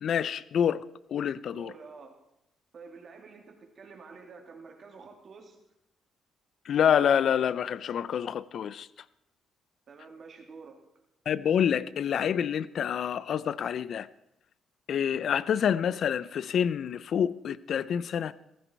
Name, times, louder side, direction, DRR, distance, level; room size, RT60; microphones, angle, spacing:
voice 1, 0.0-0.8 1.1-1.7 6.7-8.9 11.3-14.1 14.9-18.3, left 8 dB, 65° left, 0.6 m, -27 dB
voice 2, 1.5-2.2 2.7-5.6 9.9-10.8, right 4 dB, 50° right, 3.0 m, -48 dB
15.0 x 14.5 x 4.6 m
cardioid pair, 90°, 0 cm